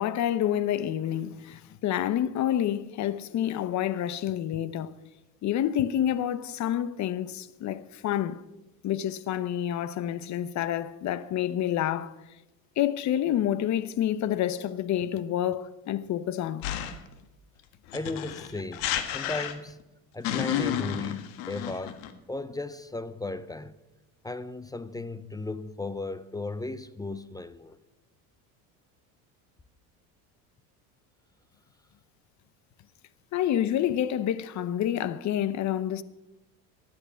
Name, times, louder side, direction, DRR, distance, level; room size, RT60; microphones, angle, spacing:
voice 1, 0.0-4.9 5.4-8.4 8.8-12.2 12.8-16.7 33.3-36.0, left 11 dB, 40° left, 0.9 m, -28 dB
sound 1, 16.6-17.1 17.9-19.8 20.2-22.1, left 10 dB, 75° left, 1.6 m, -31 dB
voice 2, 17.9-19.8 20.1-23.8 24.2-27.8, left 2 dB, 10° left, 0.4 m, -36 dB
15.0 x 11.0 x 5.6 m
supercardioid pair, 100°, 43 cm